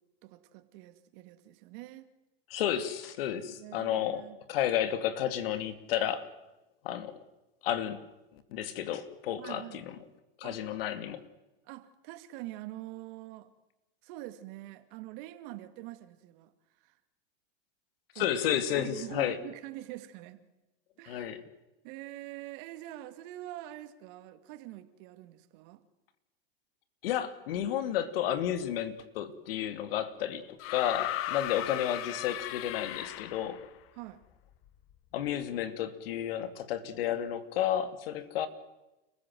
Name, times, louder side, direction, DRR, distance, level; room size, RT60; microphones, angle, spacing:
voice 1, 0.2-2.1 3.4-4.4 9.4-9.8 10.4-10.6 11.7-13.5 14.0-16.5 16.8-17.0 18.1-18.3 18.7-20.4 21.0-21.4 21.8-25.8 33.9-34.2, right 16 dB, 60° right, 2.5 m, -45 dB
voice 2, 2.5-4.2 4.5-6.3 6.8-7.1 7.6-8.0 8.5-9.8 10.4-11.2 18.2-19.4 21.1-21.4 27.0-33.6 35.1-38.5, left 10 dB, 70° left, 2.5 m, -32 dB
sound 1, 30.6-33.7 34.9-35.0, left 14 dB, 45° left, 1.4 m, -36 dB
30.0 x 15.5 x 7.8 m
hypercardioid pair, 100°, 30 cm